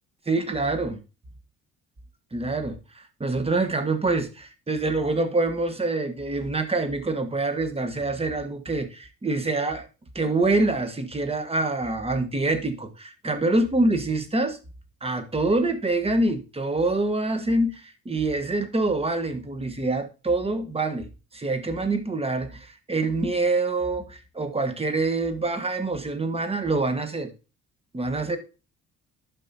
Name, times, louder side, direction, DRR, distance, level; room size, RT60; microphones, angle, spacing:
voice 1, 0.3-1.0 2.3-9.9 10.1-14.6 15.0-21.1 21.3-27.3 27.9-28.4, right 2 dB, 20° right, 1.3 m, -25 dB
11.5 x 5.5 x 2.8 m
cardioid pair, 90°, 30 cm